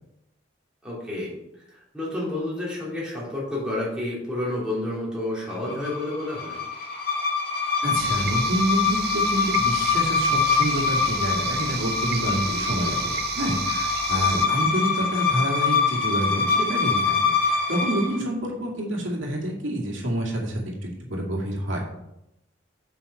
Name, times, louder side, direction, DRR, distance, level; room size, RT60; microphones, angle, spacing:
voice 1, 0.8-1.3 1.7-6.6 14.1-14.5, left 1 dB, 5° right, -7 dB, 3.1 m, -30 dB
sound 1, 5.5-18.2, left 5 dB, 50° left, 1.9 m, -24 dB
voice 2, 7.8-21.8, right 1 dB, 85° right, -1 dB, 2.2 m, -28 dB
sound 2, 8.0-14.5, right 9 dB, 55° right, 0.5 m, -33 dB
7.1 x 6.3 x 5.6 m, 0.83 s
head